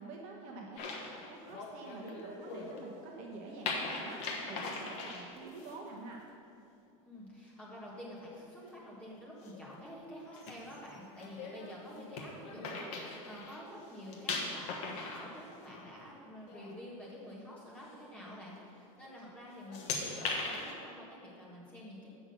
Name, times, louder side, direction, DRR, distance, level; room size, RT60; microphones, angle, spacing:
voice 1, 0.0-6.2, right 3 dB, 40° right, -1 dB, 1.0 m, -47 dB
sound 1, 0.8-2.9 3.6-5.8 8.7-9.0 9.4-9.6 10.3-13.6 13.9-16.1 16.4-16.7 17.2-17.3 18.2-18.5 19.0-19.2 19.5-20.7, left 3 dB, 40° left, 1.1 m, -40 dB
voice 2, 7.0-22.1, equal, 5° left, -6 dB, 1.7 m, -49 dB
7.5 x 6.1 x 6.9 m, 2.5 s
supercardioid pair, 165°, 18 cm